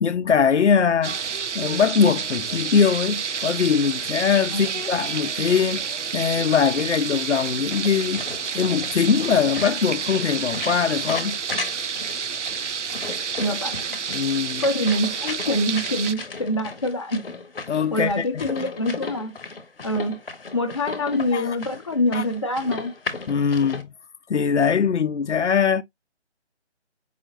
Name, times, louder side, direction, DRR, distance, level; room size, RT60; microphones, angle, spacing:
voice 1, 0.0-1.2 1.5-8.2 8.5-11.4 14.1-14.6 17.7-18.5 21.3-21.6 22.1-22.2 23.3-23.9 24.3-25.8, left 6 dB, 80° left, 0.5 m, -22 dB
sound 1, 1.0-16.1, right 6 dB, 80° right, 0.5 m, -29 dB
sound 2, 6.4-23.8, left 4 dB, 55° left, 0.9 m, -36 dB
voice 2, 13.4-14.0 14.6-17.2 17.9-19.3 19.8-20.2 20.5-22.9, left 1 dB, 25° left, 0.6 m, -25 dB
4.8 x 2.8 x 2.6 m
figure-of-eight pair, 155°, 35 cm